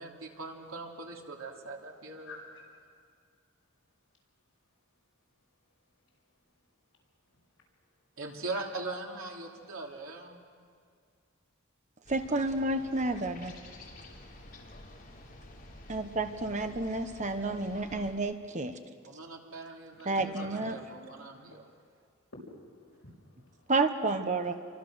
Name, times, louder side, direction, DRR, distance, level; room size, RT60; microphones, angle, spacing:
voice 1, 0.0-2.4 8.2-10.4 19.1-20.2 20.7-21.7, right 3 dB, 75° right, 3.1 m, -41 dB
voice 2, 2.2-2.6 18.0-18.1 20.0-20.9 22.6-23.7, left 2 dB, 65° left, 6.5 m, -50 dB
sound 1, 12.0-18.1, left 1 dB, 45° left, 3.6 m, -50 dB
voice 3, 12.1-13.5 15.9-18.7 20.0-20.7 23.7-24.5, right 2 dB, 35° right, 1.2 m, -30 dB
28.5 x 24.0 x 6.5 m
head